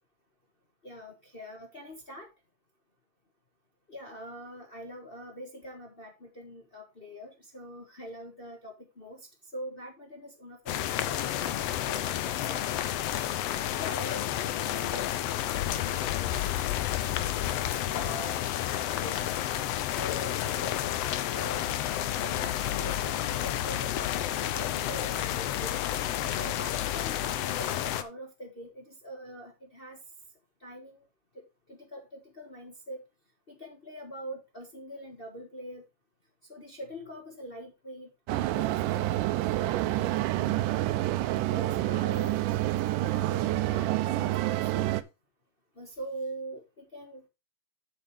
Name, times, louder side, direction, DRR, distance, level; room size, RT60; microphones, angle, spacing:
voice 1, 0.8-2.3 3.9-12.8 13.1-15.1 15.6-16.3 17.2-18.4 19.0-19.3 20.0-21.7 22.1-25.8 26.3-30.0 30.6-31.0 31.7-33.0 33.5-35.8 36.5-40.8 41.3-42.4 43.0-44.9 45.8-47.3, right 1 dB, 45° left, 0.7 m, -44 dB
sound 1, 10.7-28.0, left 12 dB, 90° left, 1.4 m, -30 dB
sound 2, 38.3-45.0, right 15 dB, 85° right, 2.2 m, -28 dB
7.9 x 7.8 x 3.5 m
omnidirectional pair, 3.7 m